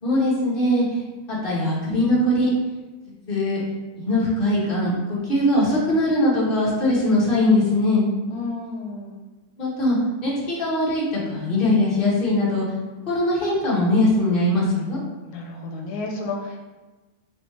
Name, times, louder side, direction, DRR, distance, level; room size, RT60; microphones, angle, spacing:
voice 1, 0.0-1.0 1.3-2.5 3.3-3.6 4.0-8.0 9.6-12.6 13.1-15.0, left 1 dB, 35° left, -7 dB, 1.5 m, -21 dB
voice 2, 8.3-9.2 15.3-16.6, left 3 dB, 85° left, 1 dB, 1.2 m, -32 dB
6.0 x 2.7 x 3.2 m, 1.2 s
omnidirectional pair, 1.6 m